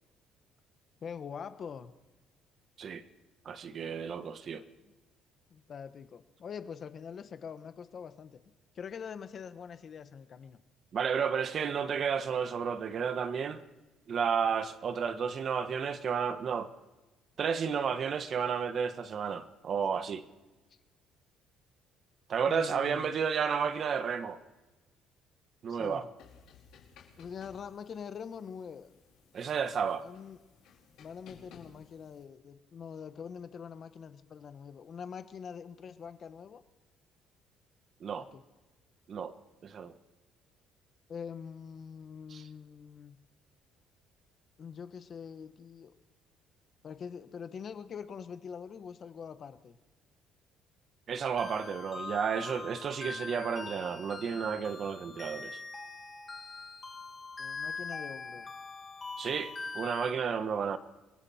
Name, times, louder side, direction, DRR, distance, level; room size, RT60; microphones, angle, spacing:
voice 1, 1.0-1.9 4.8-4.9 5.5-8.4 8.7-10.6 22.5-23.1 25.7-26.1 27.2-28.9 30.0-30.4 31.0-36.6 38.2-38.4 41.1-43.2 44.6-45.9 46.8-49.8 57.4-58.5, left 7 dB, 40° left, 1.2 m, -44 dB
voice 2, 3.4-4.6 10.9-13.6 14.1-16.7 17.4-20.2 22.3-24.4 25.6-26.1 29.3-30.0 38.0-38.3 39.1-39.3 39.6-39.9 42.3-42.4 51.1-55.6 59.2-60.8, right 6 dB, 40° right, 1.3 m, -32 dB
sound 1, 26.2-32.2, left 6 dB, 70° left, 4.9 m, -59 dB
sound 2, 51.4-60.1, left 4 dB, 20° left, 2.1 m, -42 dB
27.5 x 22.0 x 4.4 m
cardioid pair, 140°, 0 cm